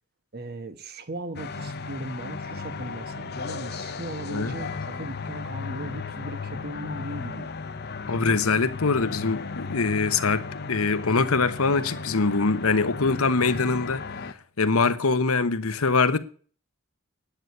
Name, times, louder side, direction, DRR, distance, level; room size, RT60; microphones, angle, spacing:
voice 1, 0.3-7.5, right 1 dB, 45° right, 1.2 m, -38 dB
sound 1, 1.3-14.3, left 4 dB, 45° left, 0.9 m, -35 dB
voice 2, 8.1-14.0 14.6-16.2, left 4 dB, 75° left, 1.0 m, -23 dB
10.0 x 8.2 x 9.5 m
head